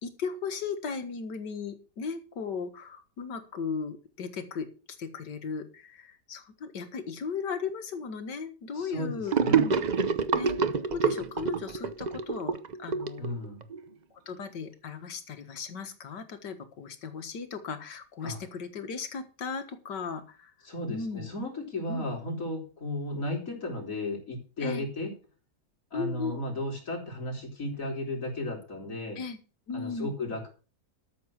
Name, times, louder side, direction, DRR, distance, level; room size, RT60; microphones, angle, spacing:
voice 1, 0.0-4.7 5.0-9.8 10.4-10.6 10.9-13.3 14.3-20.5 20.9-21.3 21.9-22.1 24.6-24.8 25.9-26.4 29.2-29.4 29.7-30.1, left 5 dB, 75° left, 8 dB, 2.2 m, -36 dB
voice 2, 8.7-9.7 13.2-13.6 18.2-18.4 20.6-25.1 25.9-29.2 29.7-30.5, left 1 dB, 50° left, 1 dB, 4.0 m, -34 dB
Gurgling / Sink (filling or washing), 9.3-13.8, right 6 dB, 85° right, 0.3 m, -27 dB
13.0 x 7.1 x 6.3 m, 0.35 s
omnidirectional pair, 1.9 m